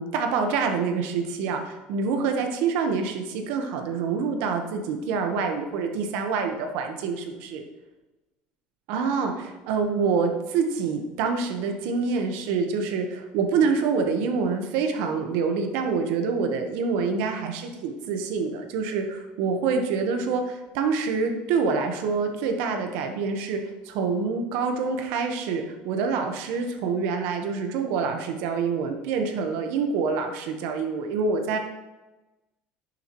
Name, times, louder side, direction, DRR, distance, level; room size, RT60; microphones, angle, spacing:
voice 1, 0.0-7.6 8.9-23.6 23.8-31.6, right 5 dB, 70° right, 5 dB, 1.3 m, -26 dB
10.5 x 7.2 x 3.2 m, 1.1 s
cardioid pair, 155°, 3 cm